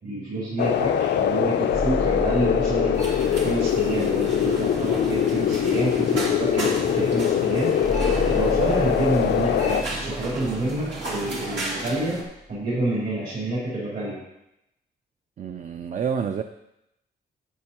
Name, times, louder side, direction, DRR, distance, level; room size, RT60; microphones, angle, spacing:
voice 1, 0.0-12.2 12.5-14.2, right 2 dB, 65° right, -9 dB, 3.9 m, -28 dB
sound 1, 0.6-9.8, left 9 dB, 75° left, 0.5 m, -23 dB
sound 2, 1.7-6.2 7.8-12.6, equal, 25° right, 0.9 m, -35 dB
sound 3, 2.9-12.2, right 2 dB, 85° right, 2.4 m, -34 dB
voice 2, 15.4-16.4, right 7 dB, 45° right, 7 dB, 0.5 m, -28 dB
11.0 x 8.6 x 3.0 m, 0.85 s
cardioid pair, 105°, 18 cm